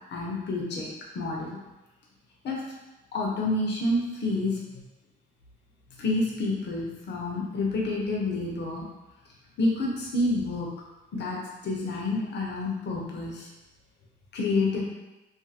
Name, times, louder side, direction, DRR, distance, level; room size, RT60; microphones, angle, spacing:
voice 1, 0.1-0.9 1.1-1.6 2.4-2.6 3.1-4.8 6.0-8.8 9.6-10.7 11.1-13.5 14.3-14.8, left 2 dB, 60° left, -2 dB, 0.8 m, -28 dB
2.5 x 2.5 x 2.8 m, 1.0 s
cardioid pair, 90°, 20 cm